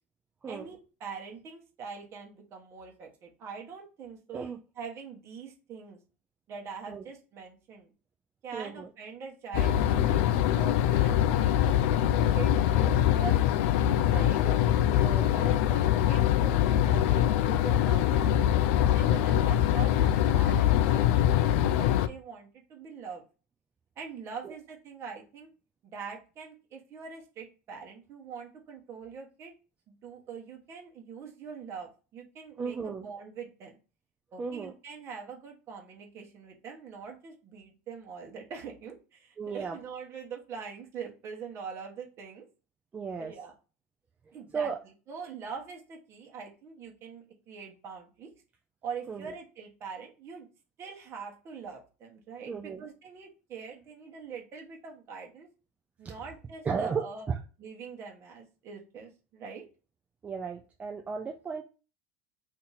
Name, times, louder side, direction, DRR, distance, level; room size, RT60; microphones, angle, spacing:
voice 1, 0.5-4.4 4.8-6.0 6.5-7.9 8.4-13.4 14.0-14.4 15.0-18.4 18.9-20.1 20.3-23.2 24.0-25.5 25.8-29.5 29.9-33.8 34.3-42.4 43.2-43.5 44.3-44.7 45.1-48.3 48.8-50.5 50.8-55.5 56.0-57.3 57.6-59.6, right 6 dB, 35° right, 1 dB, 1.2 m, -43 dB
voice 2, 8.5-8.9 14.4-14.5 15.0-15.4 24.4-24.5 32.6-33.1 34.4-34.7 39.4-39.8 42.9-43.3 44.5-44.8 49.1-49.3 52.5-52.8 56.0-56.1 56.6-57.0 60.2-61.6, right 5 dB, 20° right, 3 dB, 0.4 m, -35 dB
sound 1, 9.5-22.1, left 11 dB, 65° left, 0.4 m, -24 dB
2.8 x 2.7 x 3.9 m, 0.34 s
supercardioid pair, 125°, 8 cm